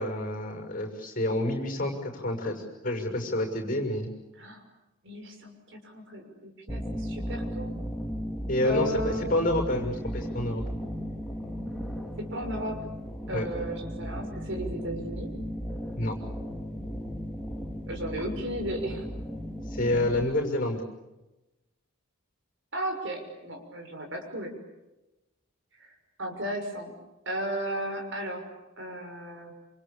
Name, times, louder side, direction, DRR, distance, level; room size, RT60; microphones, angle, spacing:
voice 1, 0.0-4.1 8.5-10.6 13.3-13.5 16.0-16.1 19.7-20.8, left 1 dB, 40° left, 4 dB, 6.4 m, -28 dB
voice 2, 5.0-7.8 8.6-9.3 12.2-12.8 13.3-15.4 17.9-19.1 22.7-24.6 25.8-25.9 26.2-27.0 27.3-28.4 28.8-29.5, right 1 dB, 60° right, 4 dB, 6.3 m, -35 dB
sound 1, 6.7-20.2, equal, 5° left, 2.5 m, -36 dB
28.0 x 28.0 x 7.1 m, 1.0 s
head